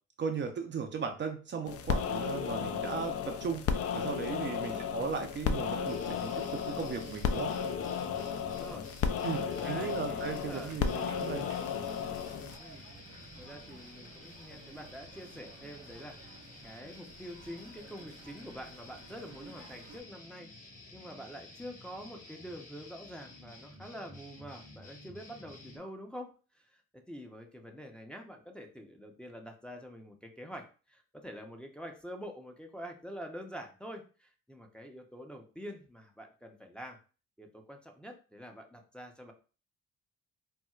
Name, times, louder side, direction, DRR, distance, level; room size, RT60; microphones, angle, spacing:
voice 1, 0.2-7.6 9.2-11.4, right 6 dB, 40° right, 4 dB, 0.4 m, -37 dB
sound 1, 1.7-12.6, left 7 dB, 50° left, 0.4 m, -34 dB
sound 2, 5.8-25.8, left 2 dB, 25° left, 1.1 m, -52 dB
voice 2, 8.4-8.9 9.4-10.8 11.0-11.1 12.6-12.8 13.4-20.5 20.9-37.0 37.4-39.3, equal, 5° left, 2 dB, 0.5 m, -46 dB
sound 3, 9.7-20.0, right 4 dB, 85° right, 0.8 m, -55 dB
4.2 x 2.1 x 2.3 m, 0.36 s
cardioid pair, 90°, 30 cm